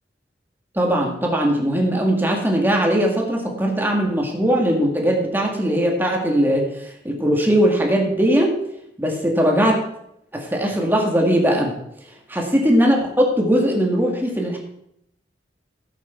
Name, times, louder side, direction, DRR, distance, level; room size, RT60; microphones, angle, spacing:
voice 1, 0.8-6.7 7.0-8.6 9.0-9.8 10.3-11.7 12.3-14.6, equal, 10° right, 0 dB, 2.2 m, -19 dB
16.0 x 8.3 x 4.6 m, 0.77 s
head